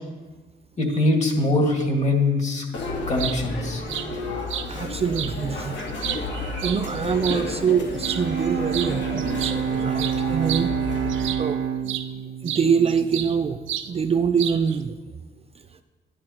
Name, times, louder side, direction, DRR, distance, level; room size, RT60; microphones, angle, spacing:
voice 1, 0.8-2.7 3.1-3.8, left 2 dB, 35° left, 0 dB, 2.1 m, -22 dB
sound 1, 2.7-11.3, left 2 dB, 65° left, 2.5 m, -32 dB
sound 2, 3.2-3.4 3.9-4.1 4.5-4.7 5.1-5.3 5.8-7.4 8.0-8.2 8.7-8.9 9.2-11.5 11.9-12.1 12.5-13.4 13.7-13.9 14.4-14.8, right 11 dB, 75° right, 0.6 m, -31 dB
voice 2, 4.7-10.8 11.1-12.0 12.4-15.0, right 6 dB, 30° right, 8 dB, 0.4 m, -25 dB
Bowed string instrument, 7.9-13.9, right 8 dB, 55° right, 1.1 m, -28 dB
11.0 x 10.5 x 3.0 m, 1.2 s
cardioid pair, 90°, 20 cm